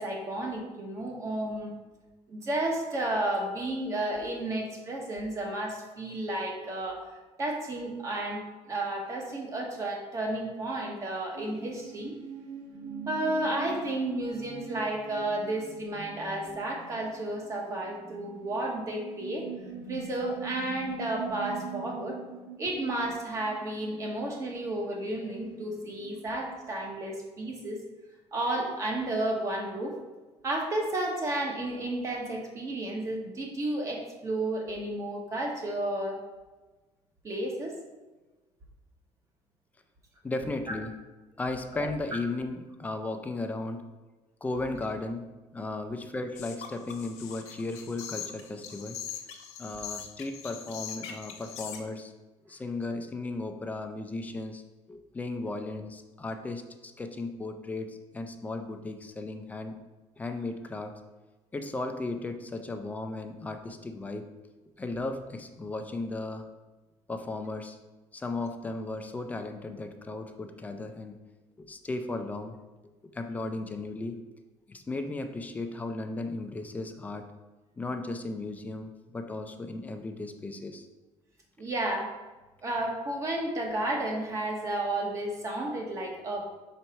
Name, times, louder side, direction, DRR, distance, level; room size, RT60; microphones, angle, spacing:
voice 1, 0.0-1.7 2.3-7.0 7.4-8.4 8.7-12.1 13.1-19.4 19.9-22.2 22.6-27.8 28.3-30.0 30.4-36.2 37.2-37.8 41.8-41.9 81.6-82.1 82.6-86.5, right 1 dB, 25° right, 1 dB, 1.0 m, -32 dB
sound 1, 11.4-26.7, right 6 dB, 90° right, 1.1 m, -43 dB
voice 2, 40.2-40.9 41.4-43.9 44.4-45.3 45.5-49.0 49.6-52.1 52.5-54.6 54.9-59.8 60.2-61.0 61.5-64.3 64.8-66.5 67.1-67.8 68.1-71.2 71.6-72.6 73.1-74.2 74.7-77.3 77.8-80.9, left 2 dB, 15° left, 6 dB, 0.4 m, -35 dB
sound 2, 46.4-51.8, left 8 dB, 75° left, 0.9 m, -41 dB
4.6 x 4.1 x 5.5 m, 1.2 s
cardioid pair, 170°, 12 cm